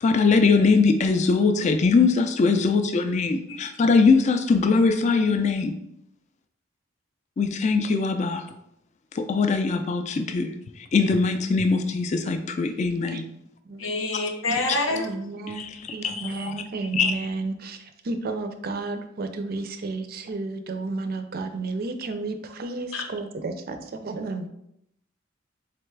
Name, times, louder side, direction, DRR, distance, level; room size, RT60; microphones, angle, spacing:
voice 1, 0.0-5.7 7.4-8.5 9.1-13.2 15.5-16.5 17.0-17.1, left 4 dB, 35° left, 7 dB, 0.3 m, -22 dB
voice 2, 13.8-15.2 22.9-23.0, left 2 dB, 85° left, 3 dB, 0.8 m, -27 dB
voice 3, 14.9-15.6 15.9-17.8 18.0-23.8 24.0-24.5, right 3 dB, 50° right, 8 dB, 0.4 m, -32 dB
3.8 x 3.3 x 3.2 m, 0.77 s
head